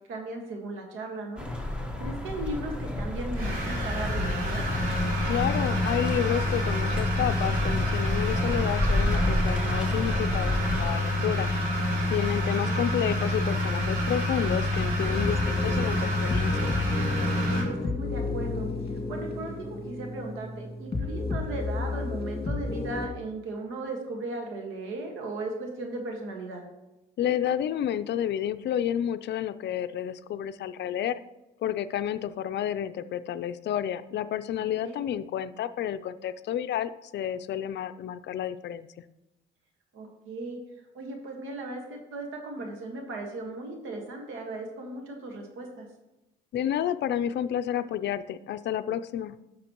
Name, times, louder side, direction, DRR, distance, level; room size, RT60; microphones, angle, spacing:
voice 1, 0.1-4.7 12.6-12.8 17.5-18.7 19.1-26.6 34.6-35.0 39.9-40.6 40.9-45.9, right 2 dB, 85° right, 2 dB, 1.6 m, -37 dB
sound 1, 1.4-10.9, left 1 dB, 5° right, 1.4 m, -31 dB
sound 2, 3.3-17.6, left 1 dB, 45° right, 3.0 m, -27 dB
voice 2, 5.3-11.5 12.1-16.7 27.2-31.2 31.6-38.9 46.5-49.4, left 10 dB, 60° left, 11 dB, 0.5 m, -30 dB
sound 3, 15.0-23.1, left 3 dB, 30° left, 2.1 m, -32 dB
11.0 x 6.4 x 3.0 m, 0.99 s
cardioid pair, 90°, 20 cm